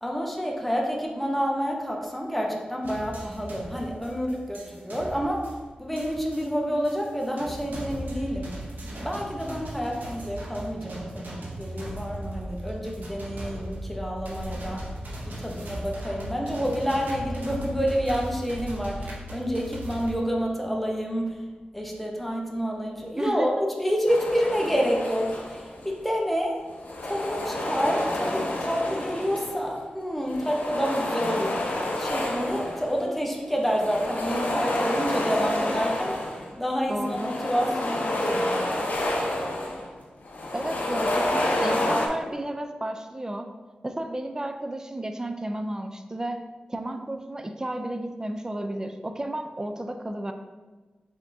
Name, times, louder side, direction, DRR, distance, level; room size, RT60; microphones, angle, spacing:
voice 1, 0.0-5.4 5.8-8.5 8.9-14.8 15.2-21.4 21.7-23.5 23.8-26.6 27.0-31.7 32.0-36.2 36.6-38.7, equal, 5° left, -1 dB, 0.8 m, -28 dB
sound 1, 2.8-20.1, right 1 dB, 85° right, 0.8 m, -37 dB
voice 2, 23.2-23.5 36.9-37.4 40.5-43.5 43.8-50.3, right 1 dB, 20° right, 6 dB, 0.4 m, -32 dB
sound 2, 24.1-25.9 26.7-29.7 30.2-33.0 33.5-36.5 36.9-39.9 40.2-42.1, left 1 dB, 65° left, 0.7 m, -29 dB
5.2 x 3.6 x 2.7 m, 1.3 s
cardioid pair, 60°, 3 cm